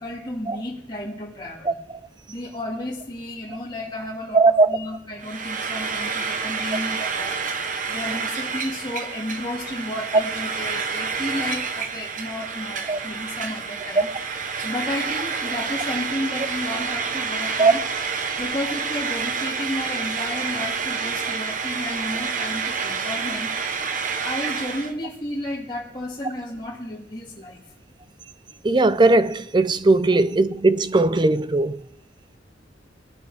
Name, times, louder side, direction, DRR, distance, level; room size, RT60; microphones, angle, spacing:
voice 1, 0.0-1.7 2.3-7.4 7.9-14.1 14.6-17.8 18.4-23.6 24.2-27.6, left 1 dB, 25° left, 2.1 m, -32 dB
voice 2, 4.3-4.8 12.9-13.0 14.0-14.1 17.6-17.7 28.6-31.9, right 3 dB, 25° right, 0.5 m, -18 dB
Frying (food), 5.2-24.9, right 5 dB, 45° right, 0.9 m, -28 dB
19.5 x 9.5 x 3.5 m
head